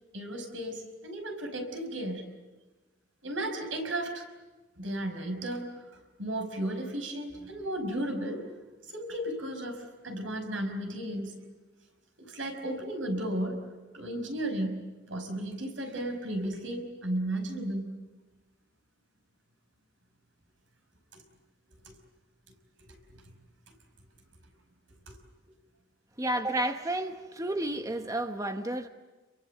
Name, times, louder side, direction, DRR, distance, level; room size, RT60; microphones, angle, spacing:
voice 1, 0.1-2.3 3.2-4.2 4.8-5.8 6.2-8.5 8.9-11.4 12.2-13.6 13.9-14.8 15.1-17.9 21.1-21.2 21.9-22.0 22.8-23.2 25.1-25.2, right 1 dB, 85° right, 5.4 m, -34 dB
voice 2, 26.2-28.9, right 1 dB, 20° right, 1.1 m, -31 dB
29.5 x 23.0 x 7.9 m
head